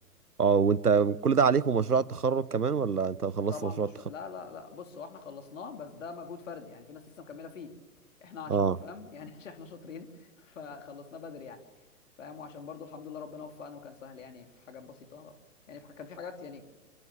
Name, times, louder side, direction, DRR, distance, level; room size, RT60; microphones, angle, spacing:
voice 1, 0.4-3.9 8.5-8.8, right 5 dB, 80° right, 1.1 m, -25 dB
voice 2, 3.5-7.7 8.2-11.6 12.2-15.3 15.7-16.6, left 5 dB, 55° left, 3.9 m, -44 dB
27.0 x 26.0 x 7.4 m
figure-of-eight pair, 120°, 45 cm